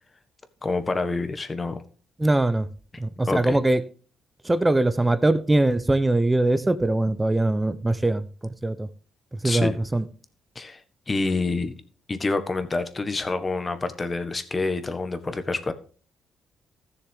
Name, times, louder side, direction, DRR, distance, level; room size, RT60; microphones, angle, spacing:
voice 1, 0.6-1.8 3.3-3.6 9.4-9.8 10.5-10.8 11.1-11.7 12.1-15.7, left 3 dB, 30° left, 1.5 m, -27 dB
voice 2, 2.2-2.7 3.0-3.8 4.4-8.2 8.6-8.9 9.4-10.0, right 2 dB, 15° right, 0.9 m, -22 dB
15.0 x 6.8 x 3.8 m
cardioid pair, 90°, 0 cm